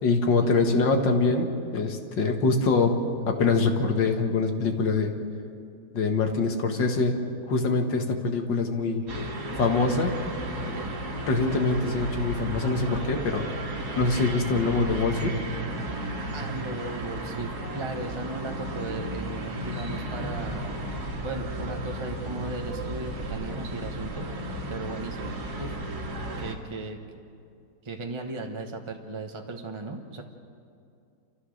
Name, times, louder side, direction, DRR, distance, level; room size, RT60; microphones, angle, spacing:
voice 1, 0.0-3.0 3.3-5.1 5.9-7.2 7.5-9.1 9.6-10.2 10.6-10.8 11.3-13.5 14.0-15.4, left 3 dB, 85° left, 4 dB, 2.3 m, -24 dB
sound 1, 9.1-26.5, right 1 dB, 60° right, 2.5 m, -34 dB
voice 2, 16.3-20.7 21.2-24.3 24.7-25.8 26.4-27.0 27.8-30.2, right 3 dB, 20° right, 3 dB, 0.9 m, -36 dB
29.0 x 14.0 x 6.5 m, 2.5 s
omnidirectional pair, 1.9 m